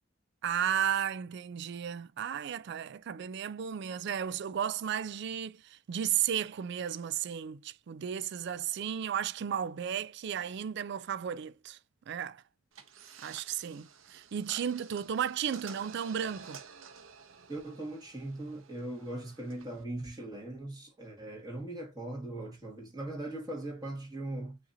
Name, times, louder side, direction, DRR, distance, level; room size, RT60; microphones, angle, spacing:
voice 1, 0.4-11.8 12.1-12.4 13.2-16.6, right 9 dB, 55° right, 0.3 m, -34 dB
sound 1, 12.7-19.8, right 6 dB, 75° right, 0.8 m, -52 dB
voice 2, 17.5-24.6, right 1 dB, 20° right, 1.7 m, -40 dB
7.5 x 2.8 x 2.5 m
head